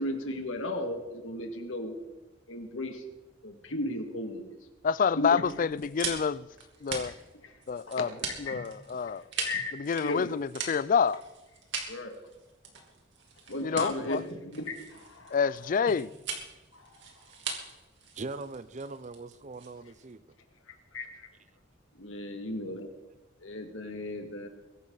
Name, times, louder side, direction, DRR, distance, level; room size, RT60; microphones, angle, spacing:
voice 1, 0.0-2.0 2.5-3.0 3.4-4.6 5.2-5.4 7.4-7.5 7.9-8.0 8.2-8.6 9.4-9.7 10.0-10.3 11.9-12.2 13.5-15.4 16.7-17.0 20.9-21.3 22.0-22.9 23.4-24.5, left 1 dB, 85° left, 2.2 m, -35 dB
voice 2, 4.8-6.4 6.8-7.1 7.7-8.1 8.5-9.2 9.8-11.2 13.6-14.2 15.3-16.1, left 6 dB, 40° left, 0.4 m, -27 dB
sound 1, 5.4-20.1, right 5 dB, 65° right, 3.0 m, -40 dB
voice 3, 18.2-20.2, right 3 dB, 35° right, 0.7 m, -41 dB
22.5 x 11.5 x 4.0 m
head